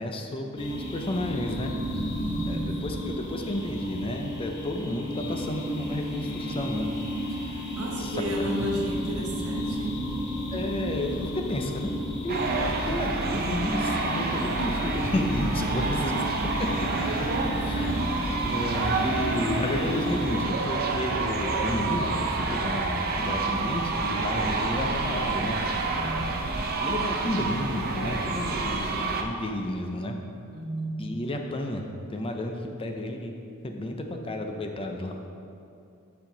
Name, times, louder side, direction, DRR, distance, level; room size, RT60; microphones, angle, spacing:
voice 1, 0.0-1.7 2.5-7.6 8.0-8.7 10.5-12.5 12.8-16.1 17.2-17.3 17.6-18.0 18.4-25.6 25.9-26.2 26.8-30.2 31.0-33.4 33.6-35.2, left 1 dB, 25° left, 3 dB, 0.5 m, -32 dB
sound 1, 0.6-20.5, equal, 55° left, 1.2 m, -33 dB
voice 2, 2.2-2.8 7.8-10.1 13.3-13.6 14.5-14.6 15.6-16.5 25.9-26.5 30.5-31.1, equal, 75° right, 0 dB, 1.0 m, -34 dB
sound 2, 12.3-29.2, right 3 dB, 45° right, 0.5 m, -28 dB
7.3 x 5.7 x 3.8 m, 2.6 s
head